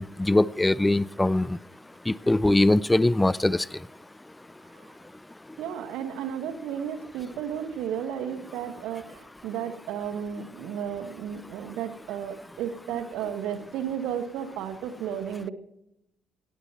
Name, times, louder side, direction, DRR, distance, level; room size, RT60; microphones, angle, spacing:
voice 1, 0.0-1.6 2.1-3.7, left 2 dB, 15° left, 21 dB, 0.5 m, -22 dB
voice 2, 5.6-15.5, right 9 dB, 65° right, 9 dB, 1.7 m, -33 dB
17.5 x 13.5 x 4.5 m, 0.82 s
figure-of-eight pair, 45°, 0 cm